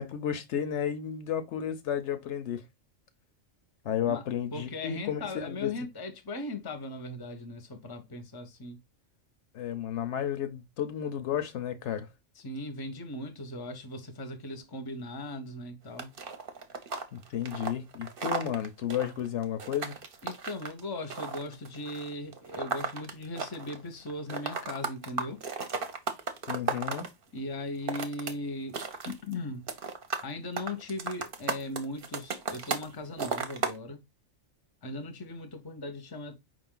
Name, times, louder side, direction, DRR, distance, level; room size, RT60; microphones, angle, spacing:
voice 1, 0.0-2.6 3.8-5.7 9.5-12.1 17.1-20.0 26.5-27.1, left 9 dB, 70° left, 0.9 m, -32 dB
voice 2, 4.5-8.8 12.4-16.1 20.2-25.4 27.3-28.8 29.0-29.7 30.2-34.0 34.8-36.4, left 2 dB, 25° left, 0.6 m, -38 dB
sound 1, 16.0-23.8 24.1-27.1 27.7-28.3 28.6-29.3 29.7-30.3 30.6-32.9 33.2-33.8, right 5 dB, 50° right, 0.8 m, -34 dB
5.0 x 2.5 x 3.7 m
omnidirectional pair, 1.3 m